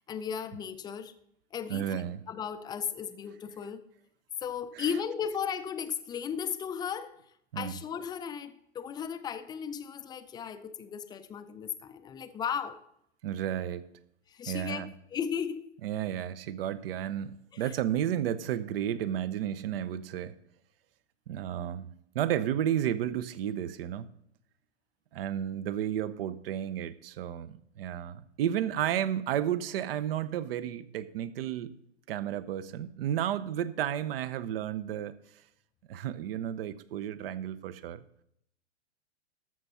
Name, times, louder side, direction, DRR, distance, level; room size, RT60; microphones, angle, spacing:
voice 1, 0.1-1.1 1.5-3.8 4.4-7.2 7.6-12.8 14.3-14.8 15.1-15.7 17.5-17.6, left 7 dB, 10° left, 0.5 m, -35 dB
voice 2, 1.7-2.2 4.7-4.9 7.5-7.7 13.2-13.9 14.5-14.9 15.8-20.3 21.3-24.1 25.1-31.7 32.1-35.2 35.9-38.0, right 10 dB, 55° right, 0.8 m, -32 dB
13.5 x 6.1 x 5.6 m
hypercardioid pair, 120°, 34 cm